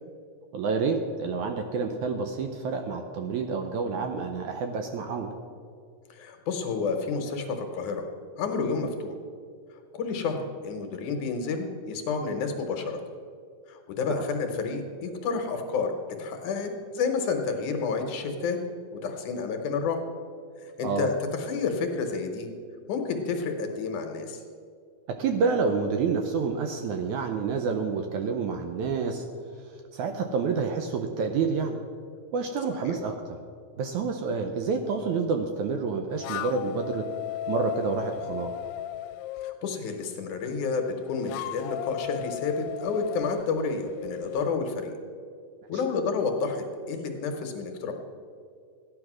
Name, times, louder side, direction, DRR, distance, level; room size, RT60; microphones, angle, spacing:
voice 1, 0.5-5.3 20.8-21.1 25.1-29.3 29.5-31.8 32.3-33.4 33.8-37.1 37.5-38.6 45.7-45.8, right 5 dB, 75° right, 5 dB, 1.8 m, -28 dB
voice 2, 6.1-8.1 8.4-9.2 9.9-13.0 13.7-15.9 16.2-18.6 18.9-20.0 20.6-21.1 21.4-22.5 22.9-24.4 32.8-33.0 39.4-44.9 45.7-47.9, left 4 dB, 70° left, 4 dB, 2.3 m, -30 dB
sound 1, 36.1-39.6 40.8-44.6, left 13 dB, 90° left, 2.4 m, -36 dB
14.0 x 10.0 x 6.1 m, 2.3 s
omnidirectional pair, 4.0 m